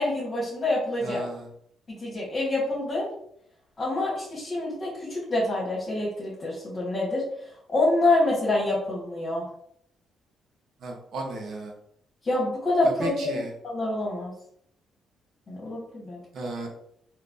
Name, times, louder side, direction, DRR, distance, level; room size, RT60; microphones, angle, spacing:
voice 1, 0.0-1.2 1.9-3.1 3.8-7.2 7.7-9.5 12.2-13.3 13.6-14.3 15.5-16.2, left 2 dB, 35° left, -6 dB, 1.4 m, -26 dB
voice 2, 1.0-1.5 10.8-11.7 12.8-13.5 16.3-16.7, right 2 dB, 65° right, 1 dB, 0.9 m, -34 dB
3.4 x 2.9 x 2.6 m, 0.69 s
cardioid pair, 90°, 0 cm